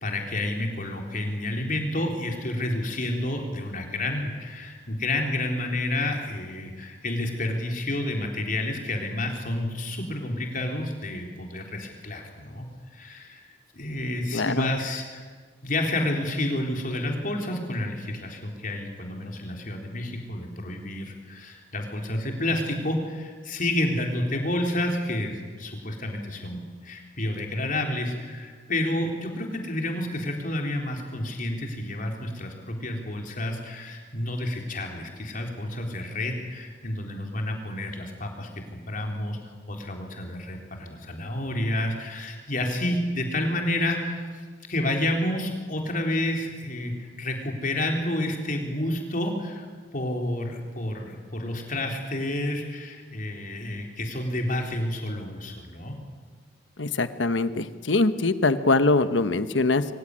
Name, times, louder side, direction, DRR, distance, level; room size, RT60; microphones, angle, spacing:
voice 1, 0.0-12.7 12.9-13.5 13.7-15.2 15.6-44.3 44.7-56.0, left 1 dB, 50° left, 2 dB, 3.9 m, -30 dB
voice 2, 14.3-14.7 56.8-59.9, left 3 dB, 85° left, 12 dB, 1.1 m, -23 dB
23.5 x 16.5 x 9.9 m, 1.5 s
head